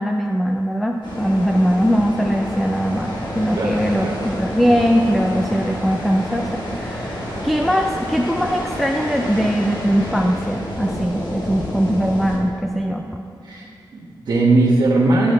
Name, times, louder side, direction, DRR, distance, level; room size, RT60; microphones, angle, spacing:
voice 1, 0.0-13.0, equal, ahead, 3 dB, 0.3 m, -20 dB
sound 1, 1.0-12.4, equal, 70° left, 1.9 m, -29 dB
voice 2, 3.6-4.1 13.4-15.3, right 2 dB, 65° right, -8 dB, 1.2 m, -19 dB
11.5 x 8.6 x 3.2 m, 2.4 s
wide cardioid pair, 175°, 8 cm